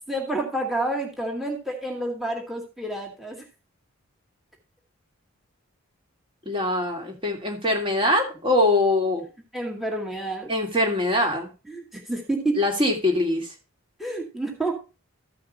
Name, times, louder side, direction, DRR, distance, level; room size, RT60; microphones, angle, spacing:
voice 1, 0.1-3.5 9.5-10.5 11.7-12.6 14.0-14.7, right 2 dB, ahead, 1 dB, 2.3 m, -29 dB
voice 2, 6.5-9.3 10.5-11.5 12.6-13.5, left 1 dB, 25° right, 1 dB, 2.7 m, -23 dB
14.5 x 5.7 x 4.1 m, 0.31 s
head